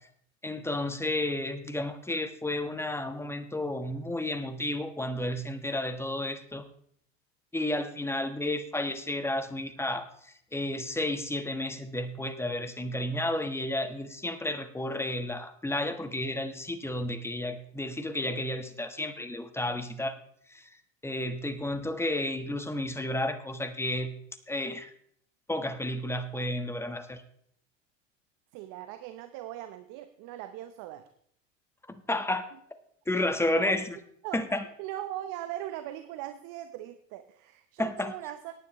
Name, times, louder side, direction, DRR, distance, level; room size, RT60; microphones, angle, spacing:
voice 1, 0.4-6.6 7.5-20.2 20.5-20.7 21.0-24.1 24.5-24.9 25.5-27.2 31.9-32.4 33.1-34.0 34.3-34.6 37.8-38.1, left 1 dB, 5° left, 9 dB, 1.3 m, -32 dB
voice 2, 28.5-31.1 32.5-32.6 33.5-33.8 34.2-34.4 34.8-38.5, right 13 dB, 55° right, 10 dB, 1.0 m, -40 dB
18.0 x 9.5 x 3.1 m, 0.65 s
hypercardioid pair, 90°, 38 cm